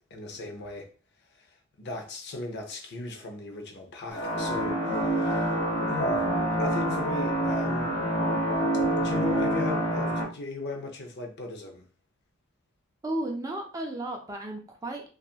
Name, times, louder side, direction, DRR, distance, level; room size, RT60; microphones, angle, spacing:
voice 1, 0.1-0.9 1.3-5.6 5.9-6.3 6.6-8.0 8.7-11.8, left 2 dB, 50° left, 0.5 m, -37 dB
sound 1, 4.1-10.2, right 1 dB, 85° left, 1.0 m, -27 dB
voice 2, 13.0-15.1, right 1 dB, 15° right, 0.4 m, -34 dB
2.8 x 2.3 x 2.4 m
head